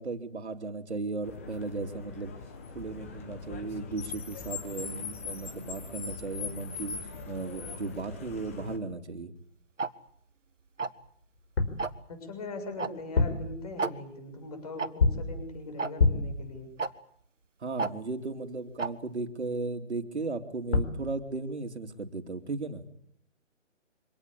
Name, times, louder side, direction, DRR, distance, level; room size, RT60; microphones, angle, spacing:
voice 1, 0.0-2.3 2.7-7.0 7.3-9.3 17.6-22.8, right 3 dB, 60° right, 7 dB, 2.9 m, -36 dB
Car, 1.2-8.8, left 5 dB, 10° left, 1.0 m, -41 dB
Tick-tock, 9.8-9.9 10.8-11.1 11.8-12.0 12.8-12.9 13.2-13.3 13.8-13.9 14.8-14.9 15.8-15.9 16.8-16.9 17.8-17.9 18.8-18.9, right 4 dB, 75° right, 1.6 m, -30 dB
sound 1, 11.4-11.9 13.0-13.5 15.0-15.4 16.0-16.4 20.4-20.5 20.7-21.1, left 3 dB, 55° left, 4.7 m, -26 dB
voice 2, 12.1-16.7, left 2 dB, 30° left, 6 dB, 6.8 m, -40 dB
25.5 x 18.0 x 8.4 m, 0.67 s
figure-of-eight pair, 160°, 38 cm